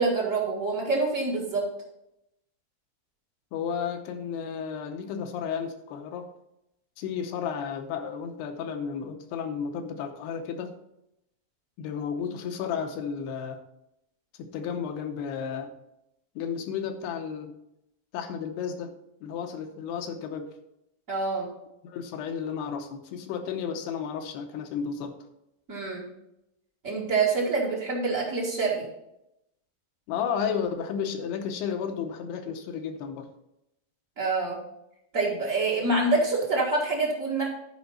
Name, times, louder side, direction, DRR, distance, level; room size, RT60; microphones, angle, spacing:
voice 1, 0.0-1.6 21.1-21.5 25.7-26.1 26.8-28.8 34.2-34.6 35.1-37.5, right 3 dB, 50° right, -4 dB, 0.9 m, -26 dB
voice 2, 3.5-6.3 7.0-10.7 11.8-13.6 14.4-15.7 16.4-17.6 18.1-18.9 19.2-20.6 21.8-25.2 30.1-33.3, left 7 dB, 85° left, 6 dB, 2.9 m, -33 dB
10.5 x 5.2 x 5.5 m, 0.85 s
omnidirectional pair, 4.6 m